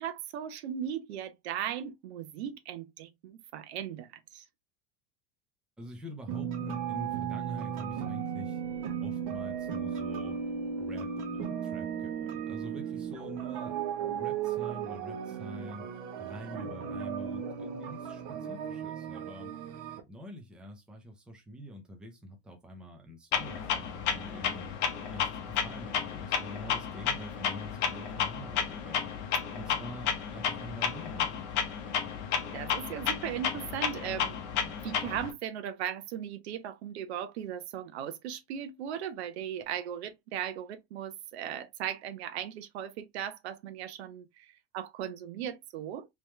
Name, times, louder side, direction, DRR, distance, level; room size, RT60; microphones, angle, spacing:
voice 1, 0.0-4.4 32.5-46.1, right 9 dB, 80° right, 0.9 m, -38 dB
voice 2, 5.8-8.6 9.0-10.4 10.8-13.8 14.2-15.8 16.2-19.5 20.1-24.7 25.1-29.1 29.5-31.5, equal, 5° right, 0.6 m, -46 dB
sound 1, 6.3-20.0, right 7 dB, 40° right, 0.9 m, -35 dB
Clock, 23.3-35.3, left 7 dB, 35° left, 0.8 m, -32 dB
3.4 x 3.1 x 3.1 m
supercardioid pair, 170°, 32 cm